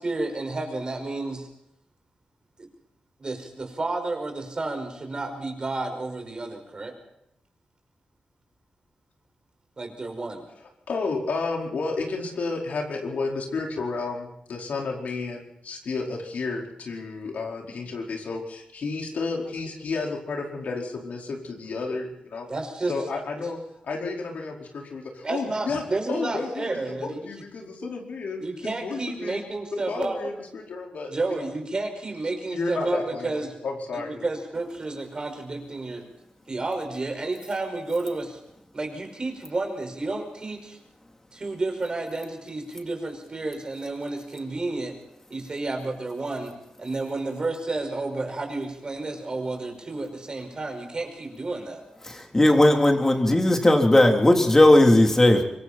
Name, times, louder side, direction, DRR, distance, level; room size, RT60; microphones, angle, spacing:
voice 1, 0.0-1.5 2.6-2.7 3.2-6.9 9.8-10.4 22.5-22.9 25.2-27.3 28.4-30.4 31.1-33.5 33.9-36.1 36.5-38.4 38.7-40.8 41.3-44.9 45.3-51.8, right 2 dB, 35° right, 4 dB, 5.4 m, -31 dB
voice 2, 10.9-22.5 22.9-23.6 23.8-25.8 26.1-29.5 29.9-31.5 32.5-34.2, left 3 dB, 75° left, 0 dB, 4.8 m, -32 dB
voice 3, 52.1-55.4, left 1 dB, 20° left, 3 dB, 3.4 m, -17 dB
25.5 x 23.0 x 4.4 m, 0.79 s
wide cardioid pair, 115°, 3 cm